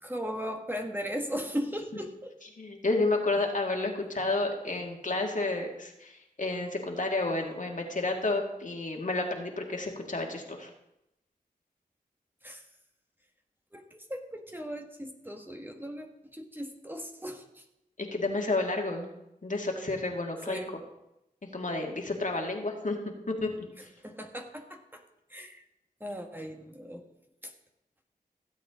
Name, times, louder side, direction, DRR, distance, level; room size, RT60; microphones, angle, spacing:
voice 1, 0.0-2.3 12.4-12.6 13.7-17.6 20.5-20.7 23.8-25.0 25.3-25.6 26.0-27.1 27.4-27.5, equal, 10° right, 3 dB, 1.5 m, -38 dB
voice 2, 2.6-10.7 18.0-19.1 19.4-20.6 21.5-23.0 23.3-23.7, left 2 dB, 55° left, 1 dB, 2.2 m, -31 dB
16.0 x 7.9 x 3.7 m, 0.87 s
cardioid pair, 40°, 16 cm